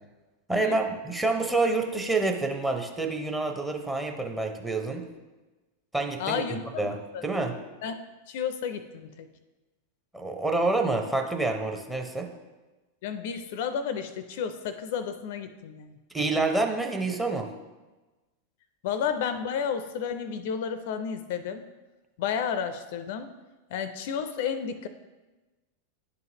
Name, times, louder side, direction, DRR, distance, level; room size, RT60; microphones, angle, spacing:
voice 1, 0.5-5.0 5.9-6.4 6.8-7.6 10.1-12.3 16.1-17.5, right 3 dB, 10° right, 2 dB, 0.7 m, -27 dB
voice 2, 6.2-6.6 7.1-7.2 7.8-8.0 8.3-9.3 13.0-16.0 18.8-21.6 22.2-23.3 23.7-24.9, left 7 dB, 50° left, 11 dB, 0.4 m, -31 dB
10.5 x 3.9 x 2.8 m, 1.2 s
figure-of-eight pair, 90°, 0 cm